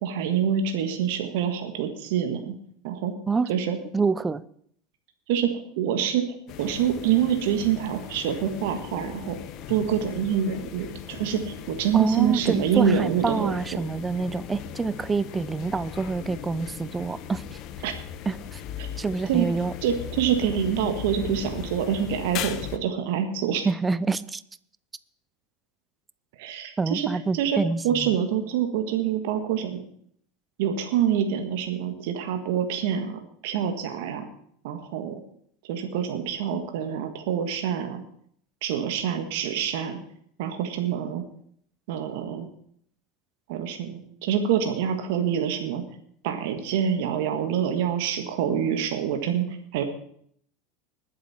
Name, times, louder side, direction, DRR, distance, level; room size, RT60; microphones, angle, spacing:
voice 1, 0.0-2.5 2.8-3.1 3.5-3.8 5.3-6.3 6.6-9.4 9.7-13.8 17.8-17.9 18.8-18.9 19.3-19.5 19.8-23.7 26.4-27.1 27.3-27.6 27.8-29.8 30.6-34.3 34.6-35.2 35.7-38.0 38.6-40.0 40.4-41.2 41.9-42.5 43.5-45.8 46.2-49.8, right 8 dB, 70° right, 6 dB, 1.8 m, -26 dB
voice 2, 3.9-4.4 11.9-17.6 18.3-18.6 19.0-19.7 23.6-24.4 26.8-28.2, right 4 dB, 20° right, 17 dB, 0.6 m, -27 dB
sound 1, 6.5-22.8, left 10 dB, 50° left, 1.2 m, -38 dB
20.5 x 7.6 x 4.4 m, 0.65 s
hypercardioid pair, 85°, 0 cm